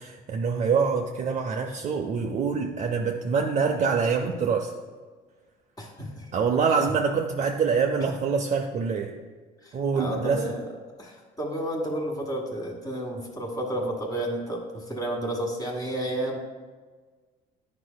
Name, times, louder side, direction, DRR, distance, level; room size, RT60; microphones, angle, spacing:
voice 1, 0.0-4.7 6.3-9.1 9.7-10.5, right 5 dB, 45° right, 2 dB, 0.5 m, -25 dB
voice 2, 5.8-6.3 9.6-10.6 11.0-16.4, right 1 dB, 20° left, 0 dB, 1.4 m, -31 dB
9.3 x 5.1 x 2.2 m, 1.4 s
cardioid pair, 110°, 17 cm